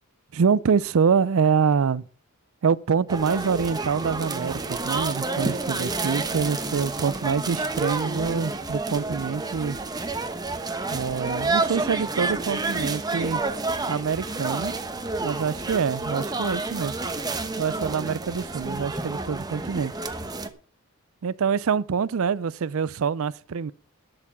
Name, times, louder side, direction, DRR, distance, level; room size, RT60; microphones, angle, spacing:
voice 1, 0.3-2.1 2.6-9.8 10.9-13.4 13.9-14.7 15.2-17.0 17.6-19.9 21.2-23.7, right 6 dB, 65° right, 0.4 m, -25 dB
sound 1, 3.1-20.5, right 3 dB, 20° right, 1.0 m, -29 dB
11.0 x 7.0 x 7.3 m
head